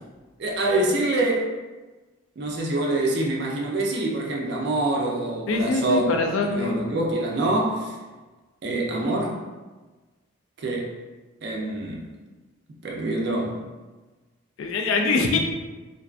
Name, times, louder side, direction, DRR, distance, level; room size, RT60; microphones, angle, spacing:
voice 1, 0.4-1.5 2.4-6.1 6.4-7.9 8.6-9.4 10.6-10.9 11.4-12.0 12.8-13.6 15.3-15.4, right 2 dB, 55° right, -1 dB, 0.4 m, -25 dB
voice 2, 5.5-7.0 14.6-15.4, left 3 dB, 75° left, 3 dB, 0.3 m, -24 dB
2.5 x 2.2 x 2.3 m, 1.2 s
head